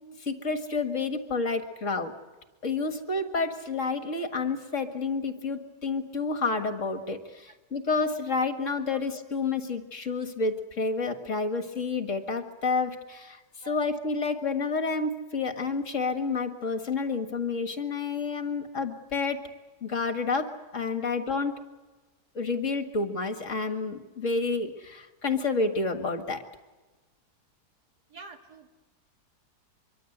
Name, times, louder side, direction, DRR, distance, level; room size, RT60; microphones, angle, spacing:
voice 1, 0.2-2.1 2.6-19.4 19.8-21.6 22.3-26.4, left 4 dB, 50° left, 7 dB, 2.1 m, -29 dB
voice 2, 21.0-21.4 28.1-28.7, right 2 dB, 75° right, 5 dB, 2.8 m, -47 dB
24.5 x 23.5 x 8.0 m, 1.2 s
omnidirectional pair, 1.8 m